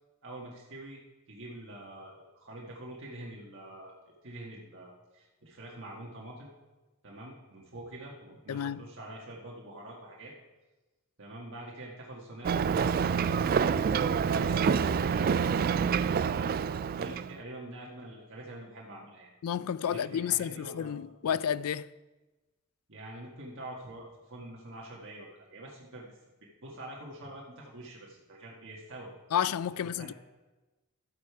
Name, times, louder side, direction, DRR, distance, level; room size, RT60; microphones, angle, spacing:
voice 1, 0.2-1.0 1.3-3.9 4.2-6.5 7.0-10.3 11.2-13.5 14.1-15.3 16.2-16.6 16.9-19.3 19.9-21.0 21.2-21.4 22.9-26.1 26.6-29.1 29.9-30.1, right 1 dB, 60° right, 1.6 m, -45 dB
voice 2, 8.5-8.9 19.4-21.9 29.3-30.1, left 9 dB, 80° left, 0.4 m, -31 dB
Ocean, 12.4-17.4, right 6 dB, 45° right, 0.3 m, -27 dB
12.5 x 8.2 x 4.7 m
head